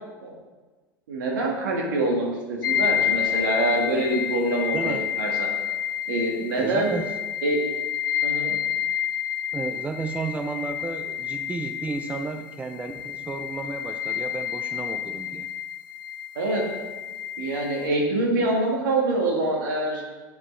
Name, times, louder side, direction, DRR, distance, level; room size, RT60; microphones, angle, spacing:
voice 1, 1.1-5.5 6.1-7.0 7.4-7.6 8.2-8.6 16.4-16.6 17.4-20.0, right 2 dB, 70° right, -1 dB, 1.9 m, -25 dB
sound 1, 2.6-17.9, left 10 dB, 80° left, 0.4 m, -29 dB
voice 2, 4.7-5.2 6.6-7.1 9.5-15.5, right 4 dB, 15° right, 7 dB, 0.4 m, -32 dB
9.1 x 4.8 x 3.3 m, 1.3 s
hypercardioid pair, 85°, 11 cm